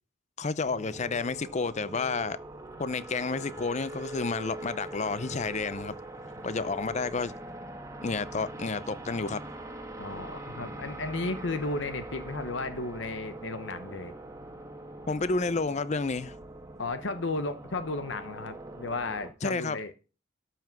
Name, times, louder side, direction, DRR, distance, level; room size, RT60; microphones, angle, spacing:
voice 1, 0.4-2.4 2.8-5.9 6.4-7.3 8.0-9.4 15.1-16.3 19.4-19.8, left 4 dB, 35° left, 0.6 m, -30 dB
sound 1, 0.6-19.3, right 1 dB, 15° right, 1.4 m, -42 dB
voice 2, 10.0-14.1 16.8-19.9, left 3 dB, 65° left, 0.9 m, -34 dB
12.5 x 5.8 x 6.0 m
head